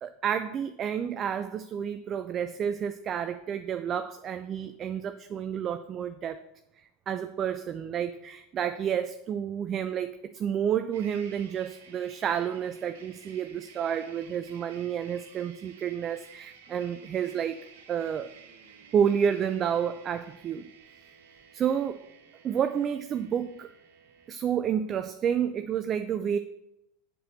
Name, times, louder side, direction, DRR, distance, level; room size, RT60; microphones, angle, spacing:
voice 1, 0.0-6.4 7.1-17.6 17.9-18.3 18.9-20.7 21.5-22.0 22.4-23.7 24.3-26.4, right 8 dB, 35° right, 10 dB, 0.5 m, -30 dB
sound 1, 10.9-24.3, right 6 dB, 65° right, 1.3 m, -53 dB
7.8 x 6.1 x 6.5 m, 0.86 s
figure-of-eight pair, 85°, 0 cm